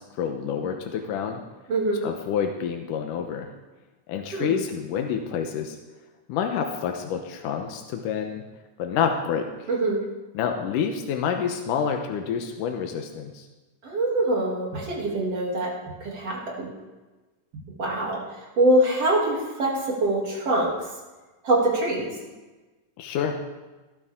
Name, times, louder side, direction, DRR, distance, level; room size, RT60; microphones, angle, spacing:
voice 1, 0.0-1.4 2.0-3.5 4.1-5.8 6.3-8.4 8.8-9.7 10.3-13.5 23.0-23.4, left 7 dB, 80° left, 4 dB, 2.5 m, -28 dB
voice 2, 1.7-2.0 4.3-4.6 9.7-10.0 13.8-15.7 16.0-16.7 17.8-18.2 18.6-20.7 21.4-22.1, right 1 dB, 50° right, -3 dB, 3.8 m, -24 dB
17.5 x 12.5 x 3.7 m, 1.2 s
omnidirectional pair, 3.7 m